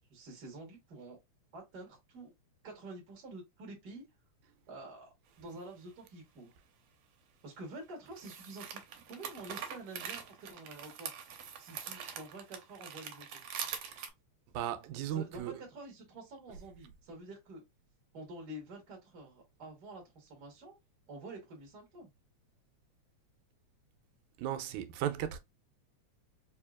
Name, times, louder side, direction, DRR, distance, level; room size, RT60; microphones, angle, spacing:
voice 1, 0.1-1.2 1.5-2.3 2.6-4.0 4.7-6.5 7.4-8.8 9.1-11.1 11.6-13.4 15.1-17.6 18.1-20.8 21.1-22.1, right 2 dB, 45° right, 1.5 m, -48 dB
sound 1, 5.4-5.5 8.0-14.1, right 8 dB, 70° right, 1.9 m, -44 dB
voice 2, 13.6-14.0 14.5-15.6 24.4-25.4, right 10 dB, 85° right, 2.0 m, -36 dB
4.7 x 2.8 x 2.3 m
omnidirectional pair, 3.4 m